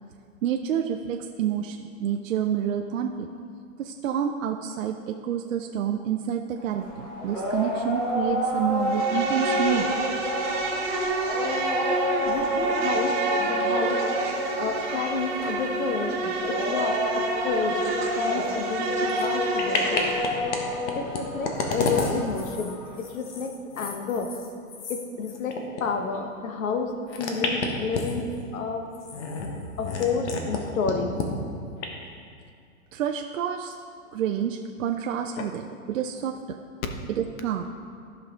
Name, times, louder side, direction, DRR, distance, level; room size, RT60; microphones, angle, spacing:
voice 1, 0.4-3.3 3.8-9.9 12.6-12.7 32.9-33.7 34.1-36.6 37.2-37.6, right 9 dB, 70° right, 4 dB, 0.6 m, -28 dB
sound 1, 6.6-23.0, equal, 10° left, 0.6 m, -30 dB
Insect, 8.8-20.3, right 2 dB, 35° right, 1.2 m, -29 dB
voice 2, 12.2-14.0 14.6-20.1 20.9-24.3 24.9-26.9 27.2-28.2 28.5-28.9 29.8-31.2 35.4-35.5, left 5 dB, 70° left, 4 dB, 1.2 m, -30 dB
sound 2, 19.1-19.3 19.6-20.6 20.9-25.8 26.1-26.2 27.1-28.4 28.9-30.6 30.8-31.3 31.8-31.9, left 4 dB, 55° left, 1.3 m, -31 dB
13.0 x 5.9 x 3.7 m, 2.3 s
hypercardioid pair, 160°, 42 cm